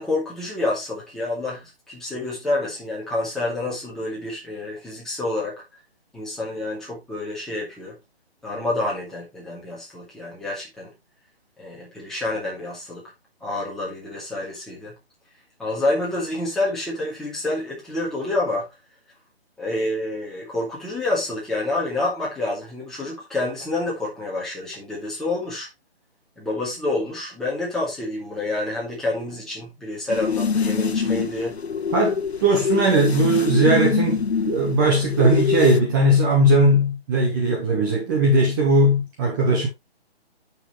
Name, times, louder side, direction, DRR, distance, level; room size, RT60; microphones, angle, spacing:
voice 1, 0.0-5.6 6.1-8.0 8.4-10.9 11.6-13.0 13.4-14.9 15.6-18.7 19.6-25.7 26.4-31.6 32.9-33.0, left 2 dB, ahead, 2.3 m, -28 dB
sound 1, 30.1-35.8, left 6 dB, 90° left, 1.2 m, -25 dB
voice 2, 31.9-39.7, right 1 dB, 20° right, 1.3 m, -19 dB
9.7 x 6.0 x 3.1 m
hypercardioid pair, 165°, 31 cm